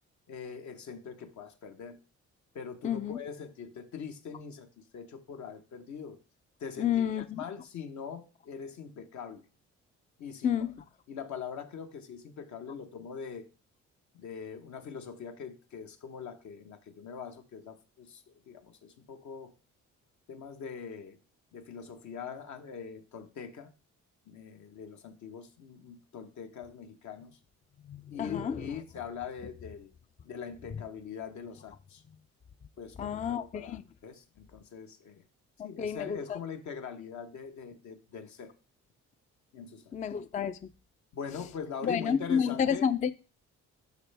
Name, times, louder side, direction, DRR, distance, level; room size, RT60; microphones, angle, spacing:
voice 1, 0.3-2.0 2.5-6.2 6.6-9.4 10.2-10.7 11.1-13.5 14.1-19.5 20.3-21.2 21.5-23.7 24.3-27.4 28.1-29.9 30.2-32.0 32.8-35.2 35.6-38.5 39.5-39.9 41.1-42.9, left 6 dB, 70° left, 1.2 m, -42 dB
voice 2, 2.8-3.2 6.8-7.4 10.4-10.8 27.8-28.6 33.0-33.8 35.8-36.4 39.9-40.6 41.8-43.1, left 8 dB, 25° left, 0.3 m, -30 dB
12.0 x 4.1 x 3.4 m
cardioid pair, 90°, 30 cm